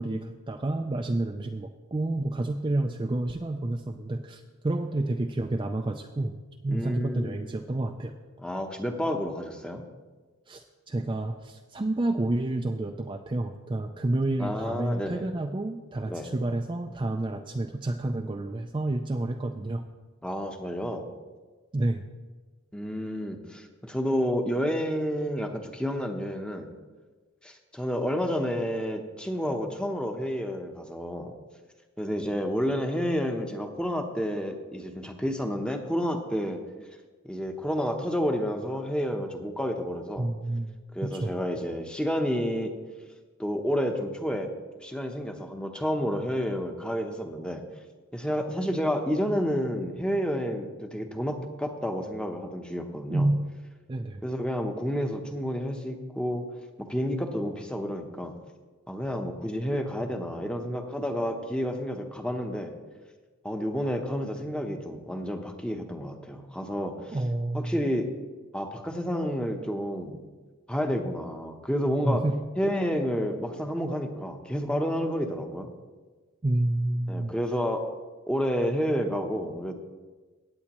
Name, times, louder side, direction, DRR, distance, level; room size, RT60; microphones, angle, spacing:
voice 1, 0.0-6.3 6.6-8.1 10.5-19.8 21.7-22.0 40.2-41.3 53.1-53.5 53.9-54.2 67.1-67.8 72.0-72.3 76.4-77.3, right 2 dB, 20° right, 4 dB, 0.4 m, -29 dB
voice 2, 6.7-7.4 8.4-9.8 14.4-15.3 16.1-16.3 20.2-21.1 22.7-26.7 27.4-31.3 32.0-36.6 37.3-40.3 40.9-42.7 43.4-44.5 44.8-47.6 48.1-53.3 54.2-56.4 56.8-58.3 58.9-62.7 63.4-67.2 67.5-68.1 68.5-70.2 70.7-72.2 72.6-75.7 77.1-77.8 78.3-79.7, equal, 5° left, 4 dB, 0.8 m, -30 dB
17.0 x 8.4 x 3.0 m, 1.3 s
head